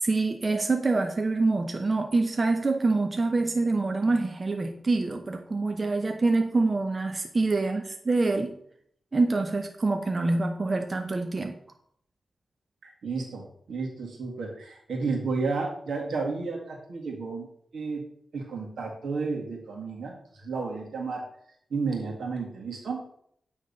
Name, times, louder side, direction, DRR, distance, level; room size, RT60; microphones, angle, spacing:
voice 1, 0.0-8.6 9.1-11.5, right 3 dB, 40° right, 5 dB, 0.7 m, -26 dB
voice 2, 12.8-17.5 17.7-18.1 18.3-21.2 21.7-23.0, right 4 dB, 85° right, 0 dB, 1.8 m, -32 dB
8.7 x 3.5 x 5.3 m, 0.68 s
cardioid pair, 70°, 0 cm